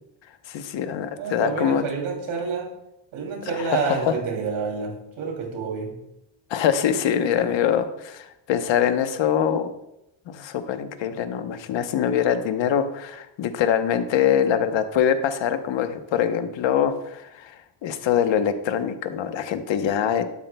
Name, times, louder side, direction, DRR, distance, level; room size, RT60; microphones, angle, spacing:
voice 1, 0.5-1.8 3.6-4.1 6.5-9.7 10.3-20.2, left 8 dB, 65° left, 9 dB, 1.0 m, -24 dB
voice 2, 1.1-2.7 3.1-6.0, right 5 dB, 85° right, 1 dB, 3.0 m, -28 dB
12.0 x 12.0 x 2.2 m, 0.86 s
cardioid pair, 160°, 48 cm